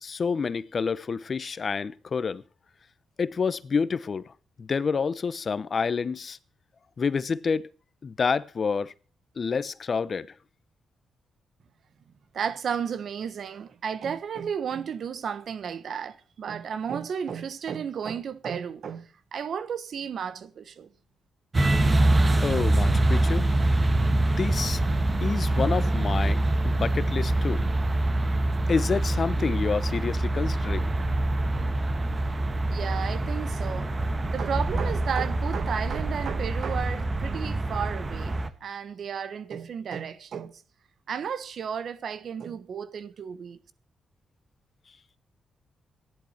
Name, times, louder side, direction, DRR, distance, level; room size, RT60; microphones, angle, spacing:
voice 1, 0.0-2.4 3.2-4.3 4.6-6.4 7.0-7.7 8.0-8.9 9.4-10.3 22.4-23.5 24.1-24.8 25.2-27.7 28.7-30.9, left 5 dB, 50° left, 0.8 m, -28 dB
voice 2, 12.3-20.9 32.7-33.9 34.3-40.6 41.1-43.6, right 7 dB, 65° right, 1.4 m, -33 dB
sound 1, 21.5-38.5, right 2 dB, 35° right, 1.6 m, -25 dB
14.0 x 11.0 x 5.9 m
supercardioid pair, 60°, 0 cm